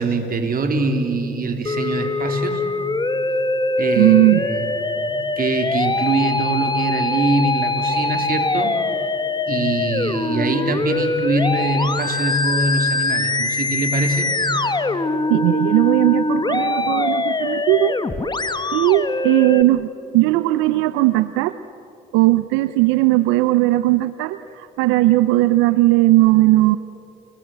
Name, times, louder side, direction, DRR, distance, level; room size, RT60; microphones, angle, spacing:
voice 1, 0.0-2.6 3.8-4.2 4.5-4.8 5.1-8.8 9.5-14.3, right 3 dB, 45° right, 4 dB, 3.8 m, -23 dB
Musical instrument, 1.7-19.6, left 2 dB, 20° left, 1.4 m, -22 dB
voice 2, 3.9-4.5 15.3-18.0 18.7-21.6 22.1-26.8, right 18 dB, 85° right, 13 dB, 0.6 m, -17 dB
29.5 x 20.0 x 8.0 m, 3.0 s
supercardioid pair, 65°, 20 cm